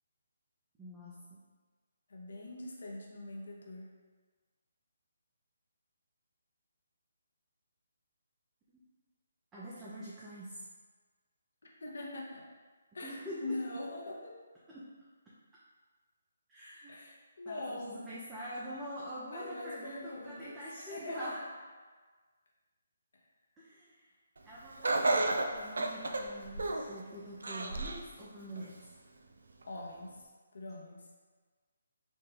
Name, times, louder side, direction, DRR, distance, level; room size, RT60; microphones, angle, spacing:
voice 1, 0.8-1.4 8.7-8.8 9.5-10.7 13.0-13.6 14.7-14.9 16.5-17.0 17.5-21.4 23.6-24.1 24.4-28.8, equal, 10° right, -9 dB, 0.6 m, -45 dB
voice 2, 2.1-3.9 11.8-12.5 12.9-14.4 16.9-18.1 19.3-21.3 29.7-30.2 30.5-31.1, left 2 dB, 65° left, -2 dB, 0.8 m, -42 dB
Laughter, 24.8-27.0 27.4-28.1 28.6-28.7 29.6-29.7, right 2 dB, 70° right, 0.4 m, -31 dB
4.2 x 2.2 x 3.4 m, 1.4 s
figure-of-eight pair, 150°, 0 cm